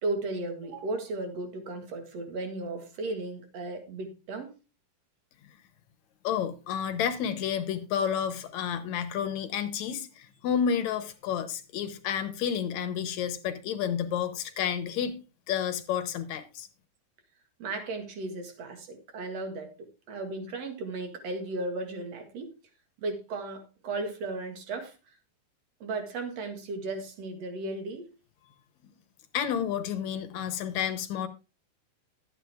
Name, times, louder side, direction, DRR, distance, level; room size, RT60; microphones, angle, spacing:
voice 1, 0.0-4.5 17.6-19.7 20.1-22.5 23.0-24.9 25.8-28.1, right 2 dB, 55° right, 2.8 m, -35 dB
voice 2, 6.2-15.2 15.5-16.7 29.3-31.3, left 8 dB, 70° left, 2.1 m, -30 dB
12.0 x 9.1 x 3.5 m
omnidirectional pair, 3.6 m